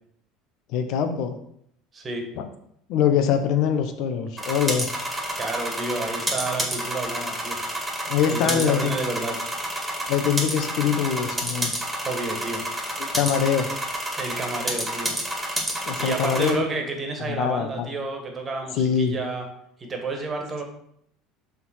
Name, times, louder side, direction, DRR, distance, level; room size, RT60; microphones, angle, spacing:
voice 1, 0.7-1.4 2.4-2.5 2.9-4.9 8.1-9.0 10.1-11.7 13.0-13.7 15.9-16.6 17.3-17.9 18.7-19.1, left 8 dB, 65° left, 8 dB, 0.9 m, -23 dB
voice 2, 1.9-2.2 5.4-7.6 8.3-9.4 12.0-12.7 14.1-15.2 16.0-19.5 19.8-20.6, right 3 dB, 30° right, 3 dB, 1.7 m, -30 dB
sound 1, 4.4-16.5, right 1 dB, 10° right, 2.2 m, -29 dB
5.7 x 3.7 x 5.7 m, 0.70 s
hypercardioid pair, 85°, 0 cm